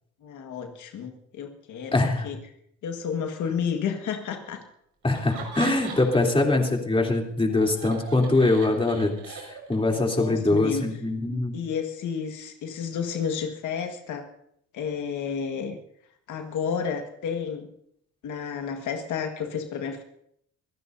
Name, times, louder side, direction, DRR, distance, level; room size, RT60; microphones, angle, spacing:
voice 1, 0.2-2.4 2.8-4.6 9.9-10.8 11.5-14.3 14.7-15.8 16.3-17.7 18.2-20.0, left 7 dB, 80° left, 4 dB, 1.7 m, -31 dB
voice 2, 1.9-2.3 5.0-9.4 9.7-11.5, left 2 dB, 20° left, 1 dB, 3.3 m, -23 dB
Laughter, 5.1-6.4 6.7-9.9, right 5 dB, 80° right, 5.7 m, -39 dB
26.0 x 15.0 x 2.7 m, 0.71 s
cardioid pair, 90°, 30 cm